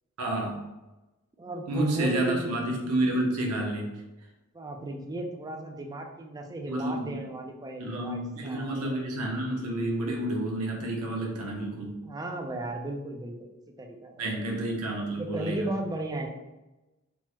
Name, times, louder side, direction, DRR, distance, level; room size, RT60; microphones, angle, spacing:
voice 1, 0.2-0.6 1.7-3.9 6.7-7.1 7.8-12.0 14.2-15.6, right 1 dB, 75° right, 0 dB, 0.6 m, -30 dB
voice 2, 1.4-2.8 4.5-8.8 12.0-14.3 15.2-16.3, right 1 dB, 15° right, 2 dB, 0.3 m, -35 dB
3.4 x 2.0 x 2.9 m, 1.1 s
head